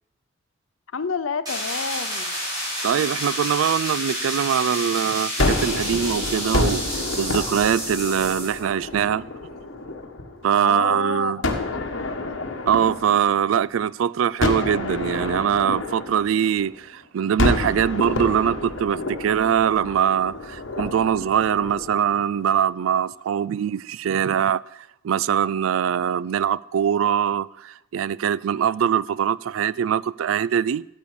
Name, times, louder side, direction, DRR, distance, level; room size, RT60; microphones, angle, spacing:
voice 1, 0.9-2.3 10.5-11.3, left 5 dB, 85° left, 0.7 m, -28 dB
sound 1, 1.5-8.6, equal, 20° right, 4.8 m, -29 dB
voice 2, 2.8-6.8 7.2-9.3 10.4-11.4 12.7-24.6 25.0-30.8, right 8 dB, 85° right, 0.3 m, -22 dB
Gunshot gunfire, 5.4-10.5 11.4-13.8 14.4-16.9 17.4-22.6, left 2 dB, 65° left, 1.3 m, -29 dB
14.0 x 8.4 x 4.8 m
head